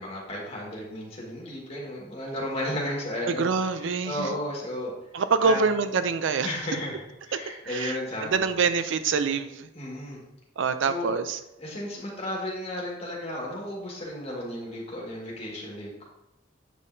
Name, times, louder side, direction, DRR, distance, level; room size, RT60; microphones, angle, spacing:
voice 1, 0.0-3.5 4.0-4.9 5.4-5.6 6.4-8.5 9.7-10.2 10.8-11.1 11.6-16.1, left 1 dB, 30° left, -3 dB, 1.8 m, -34 dB
voice 2, 3.3-4.3 5.1-6.5 7.3-7.4 7.6-9.7 10.6-11.4, right 5 dB, 70° right, 11 dB, 0.4 m, -26 dB
8.5 x 5.4 x 2.7 m, 0.90 s
head